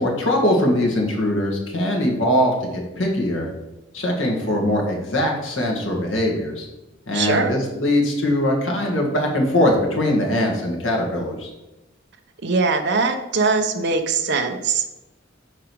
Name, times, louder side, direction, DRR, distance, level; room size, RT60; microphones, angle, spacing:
voice 1, 0.0-3.5 3.9-6.7 7.1-11.5, left 1 dB, 75° left, 0 dB, 1.9 m, -21 dB
voice 2, 7.1-7.5 12.4-15.1, right 4 dB, 60° right, 5 dB, 0.8 m, -21 dB
6.4 x 5.0 x 6.3 m, 0.98 s
head